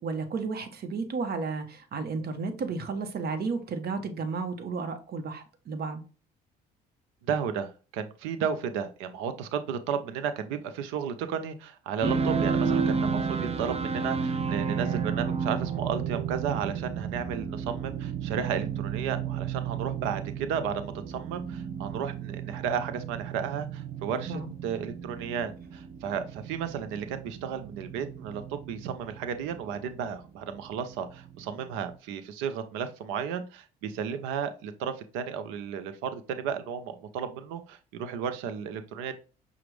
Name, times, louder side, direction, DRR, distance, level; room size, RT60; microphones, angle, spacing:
voice 1, 0.0-6.0 24.3-24.5, right 4 dB, 50° right, 1.1 m, -33 dB
voice 2, 7.3-39.1, right 7 dB, 80° right, 0.7 m, -33 dB
sound 1, 12.0-32.0, right 6 dB, 30° right, 0.6 m, -32 dB
6.0 x 2.4 x 3.2 m
supercardioid pair, 65°, 20 cm